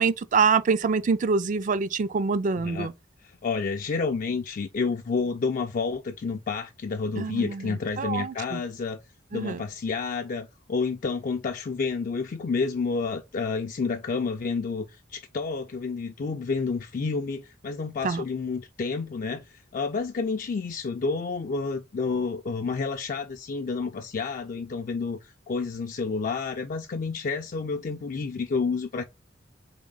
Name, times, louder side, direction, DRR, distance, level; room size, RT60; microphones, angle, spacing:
voice 1, 0.0-2.9 7.2-8.6 9.3-9.6 18.0-18.2, right 5 dB, 45° right, 0.4 m, -25 dB
voice 2, 2.5-2.9 3.2-9.0 9.3-29.0, left 4 dB, 45° left, 0.4 m, -30 dB
3.9 x 3.6 x 3.7 m
head